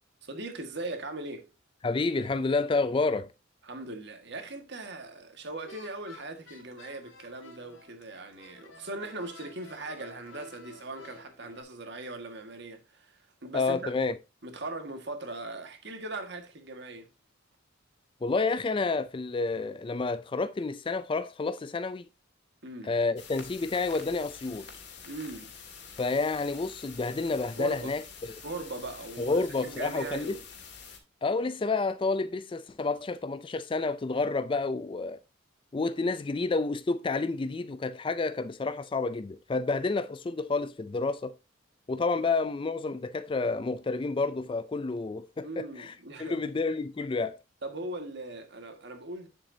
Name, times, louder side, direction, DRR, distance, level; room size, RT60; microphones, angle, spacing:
voice 1, 0.2-1.5 3.6-13.9 14.4-17.1 22.6-22.9 25.0-25.5 27.6-27.9 28.4-30.4 45.4-46.4 47.6-49.3, right 2 dB, 60° right, 1.7 m, -39 dB
voice 2, 1.8-3.3 13.5-14.2 18.2-22.1 22.8-24.7 26.0-28.4 29.2-30.4 31.2-35.2 35.7-41.4 41.9-45.9 46.2-47.4, left 3 dB, 25° left, 0.3 m, -29 dB
sound 1, 5.6-11.6, left 3 dB, 80° left, 3.0 m, -52 dB
sound 2, 23.2-31.0, left 6 dB, 55° left, 2.1 m, -47 dB
9.2 x 7.4 x 2.7 m
head